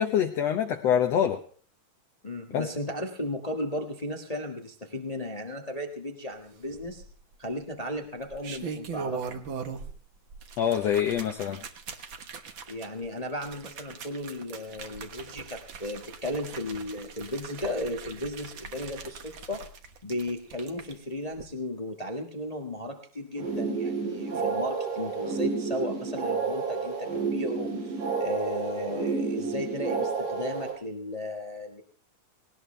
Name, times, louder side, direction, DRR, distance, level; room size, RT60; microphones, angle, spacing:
voice 1, 0.0-1.4 2.5-2.7 10.6-11.6, left 9 dB, 65° left, 6 dB, 1.7 m, -25 dB
voice 2, 2.2-7.0 7.4-9.4 12.7-19.6 20.0-27.9 28.2-31.8, left 1 dB, 50° left, 3 dB, 0.4 m, -35 dB
sound 1, 6.7-7.3 8.2-10.0 10.3-20.9 21.3-21.4, right 5 dB, 55° right, 1.4 m, -41 dB
sound 2, 23.4-30.7, right 5 dB, 75° right, 7.0 m, -30 dB
19.0 x 19.0 x 3.3 m, 0.44 s
omnidirectional pair, 3.9 m